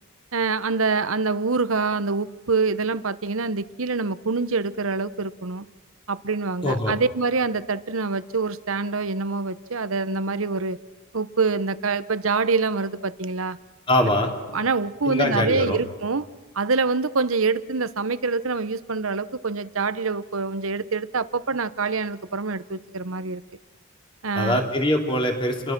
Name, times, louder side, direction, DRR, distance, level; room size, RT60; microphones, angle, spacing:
voice 1, 0.3-5.7 6.1-10.8 11.1-13.6 14.5-16.3 16.5-23.4 24.2-24.6, right 4 dB, 75° right, 14 dB, 1.0 m, -25 dB
voice 2, 6.6-6.9 13.9-14.3 15.0-15.8 24.3-25.7, left 1 dB, 25° left, 2 dB, 3.4 m, -23 dB
30.0 x 22.5 x 6.1 m, 1.3 s
head